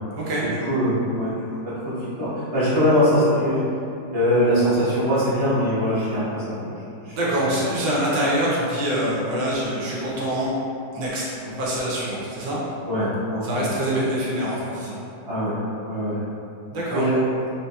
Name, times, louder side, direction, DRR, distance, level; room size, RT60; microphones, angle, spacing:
voice 1, 0.6-3.6 4.1-7.2 12.9-13.4 15.3-15.6 15.9-16.2 16.9-17.2, equal, 30° right, -14 dB, 0.7 m, -22 dB
voice 2, 7.1-10.5 10.9-12.6 13.4-15.0 16.7-17.1, right 1 dB, 90° right, -6 dB, 1.5 m, -25 dB
3.9 x 2.7 x 2.3 m, 2.7 s
omnidirectional pair, 1.9 m